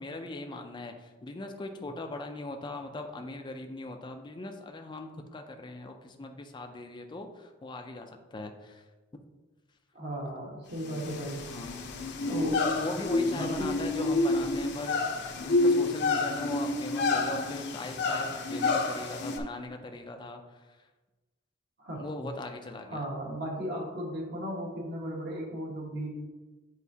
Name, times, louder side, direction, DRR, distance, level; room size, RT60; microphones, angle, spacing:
voice 1, 0.0-8.8 11.5-11.8 12.3-15.0 15.4-20.7 22.0-23.1, left 2 dB, 25° left, 4 dB, 0.4 m, -40 dB
voice 2, 9.9-11.4 12.3-12.6 13.3-14.0 21.8-22.0 22.9-26.1, equal, 55° right, -1 dB, 1.5 m, -36 dB
sound 1, 10.8-19.4, left 3 dB, 60° left, 0.7 m, -29 dB
8.1 x 4.5 x 2.8 m, 1.2 s
head